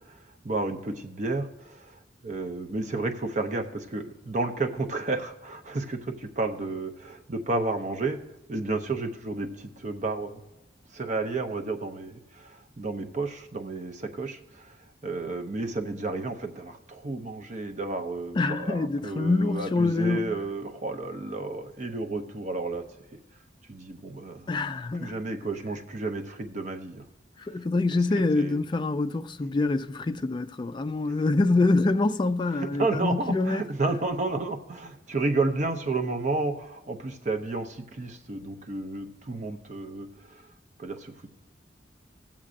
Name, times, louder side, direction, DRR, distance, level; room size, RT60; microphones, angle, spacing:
voice 1, 0.0-8.2 8.5-10.4 10.9-14.8 15.0-22.9 23.7-24.5 25.0-27.1 28.4-28.6 32.6-40.5 40.8-41.3, right 3 dB, 40° right, 0.6 m, -31 dB
voice 2, 18.3-20.4 24.5-25.2 27.4-33.6, left 3 dB, 25° left, 0.3 m, -25 dB
18.0 x 7.2 x 2.5 m
head